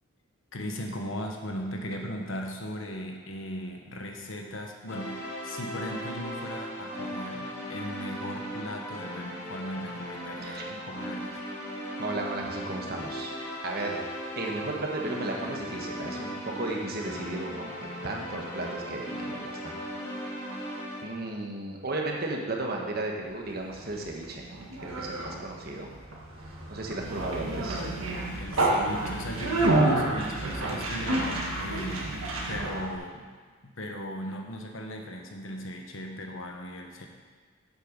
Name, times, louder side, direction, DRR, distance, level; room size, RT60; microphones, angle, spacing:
voice 1, 0.5-11.3 28.4-32.2 32.5-33.3 33.6-37.1, equal, 70° left, 2 dB, 1.2 m, -37 dB
sound 1, 4.9-21.0, equal, 15° left, 2.5 m, -37 dB
voice 2, 12.0-13.3 13.6-14.1 14.4-19.8 21.0-25.9 26.7-27.8, right 2 dB, 50° right, 0 dB, 1.3 m, -34 dB
Conversation, 23.5-33.0, right 2 dB, 85° right, 1.6 m, -29 dB
8.0 x 7.9 x 5.3 m, 1.5 s
head